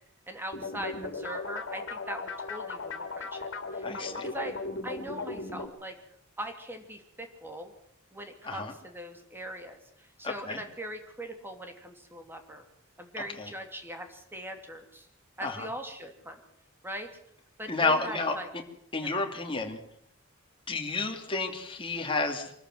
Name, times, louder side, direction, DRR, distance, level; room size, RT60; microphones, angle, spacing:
voice 1, 0.3-4.6 4.8-5.9 6.4-7.7 8.1-12.6 13.0-15.1 15.4-16.4 16.8-17.1 17.6-18.5 19.0-19.1, right 1 dB, 10° right, 5 dB, 2.7 m, -41 dB
sound 1, 0.5-5.7, left 3 dB, 60° left, 3.0 m, -37 dB
voice 2, 3.8-4.3 8.4-8.7 10.2-10.6 13.2-13.5 15.4-15.7 17.7-18.4 18.9-19.8 20.7-22.5, left 3 dB, 25° left, 3 dB, 2.8 m, -31 dB
25.0 x 14.0 x 7.9 m, 0.68 s
head